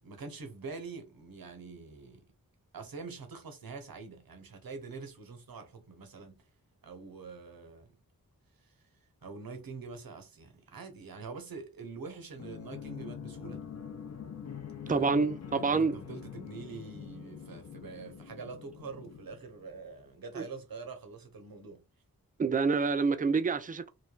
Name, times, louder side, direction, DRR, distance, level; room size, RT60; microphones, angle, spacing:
voice 1, 0.0-2.3 2.7-6.4 6.8-8.0 8.6-8.8 9.2-13.6 14.9-15.1 15.6-21.8, right 4 dB, 70° right, 0.8 m, -45 dB
sound 1, 12.4-19.9, left 8 dB, 45° left, 0.5 m, -44 dB
voice 2, 14.9-16.0 20.4-20.5 22.4-23.9, right 4 dB, 25° right, 0.4 m, -27 dB
3.2 x 2.2 x 2.3 m
cardioid pair, 40°, 37 cm